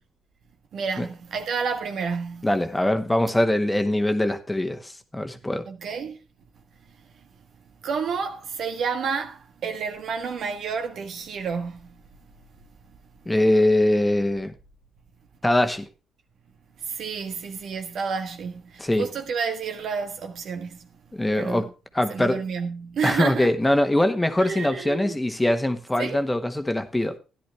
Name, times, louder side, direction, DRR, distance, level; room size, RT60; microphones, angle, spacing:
voice 1, 0.7-2.5 5.7-6.2 6.9-7.1 7.8-12.0 16.8-20.9 21.3-21.7 22.1-23.5 24.4-25.1 26.0-26.2, right 6 dB, 65° right, 1.5 m, -30 dB
voice 2, 2.4-5.6 13.2-14.5 15.4-15.9 18.8-19.0 21.1-21.7 21.9-22.4 23.0-27.2, left 1 dB, 15° left, 1.4 m, -22 dB
13.5 x 10.5 x 3.4 m
hypercardioid pair, 55°, 0 cm